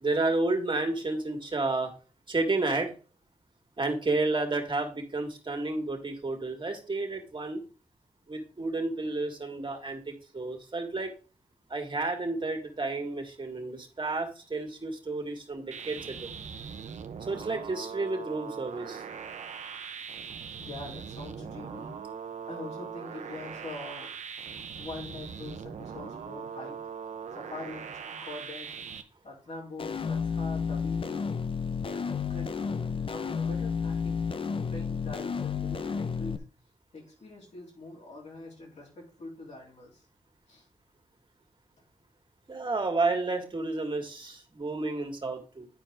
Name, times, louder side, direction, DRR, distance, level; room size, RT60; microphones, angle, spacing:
voice 1, 0.0-1.9 2.3-2.9 3.8-7.6 8.3-11.1 11.7-16.3 17.2-19.0 42.5-45.7, right 2 dB, 40° right, 4 dB, 2.2 m, -31 dB
sound 1, 15.7-29.0, right 6 dB, 80° right, 0.7 m, -41 dB
voice 2, 20.6-21.9 22.5-24.1 24.8-26.8 27.3-28.7 29.2-31.2 31.8-34.2 34.7-36.4 36.9-40.0 40.5-40.7, left 2 dB, 70° left, -3 dB, 3.7 m, -43 dB
sound 2, 29.8-36.4, left 6 dB, 50° left, 0.7 m, -31 dB
10.5 x 4.7 x 3.8 m, 0.36 s
cardioid pair, 65°, 12 cm